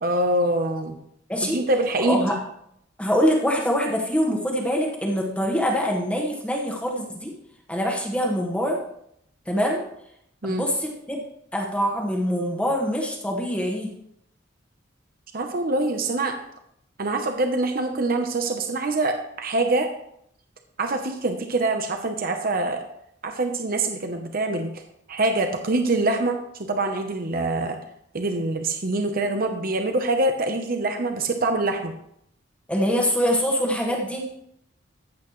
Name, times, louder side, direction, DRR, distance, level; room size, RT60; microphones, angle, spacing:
voice 1, 0.0-1.0 1.5-2.4 10.4-10.7 15.3-16.4 17.0-19.9 20.8-22.8 23.2-24.8 25.1-27.8 28.1-31.9, right 2 dB, 50° right, 5 dB, 0.9 m, -24 dB
voice 2, 2.0-2.4 3.0-7.3 7.7-8.8 9.5-9.8 10.4-11.2 11.5-13.9 32.7-34.2, equal, 5° left, -1 dB, 1.4 m, -24 dB
14.5 x 8.1 x 3.2 m, 0.74 s
head